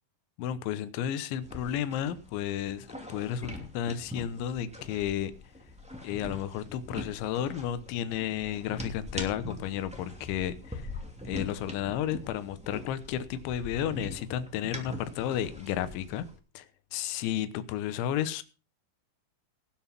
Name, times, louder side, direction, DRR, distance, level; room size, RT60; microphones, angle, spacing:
voice 1, 0.4-5.3 6.0-10.9 11.2-16.3 16.5-16.7 16.9-18.4, left 10 dB, 80° left, 3.3 m, -32 dB
sound 1, 1.4-16.4, left 1 dB, 5° right, 1.0 m, -43 dB
19.0 x 6.3 x 6.0 m
omnidirectional pair, 5.5 m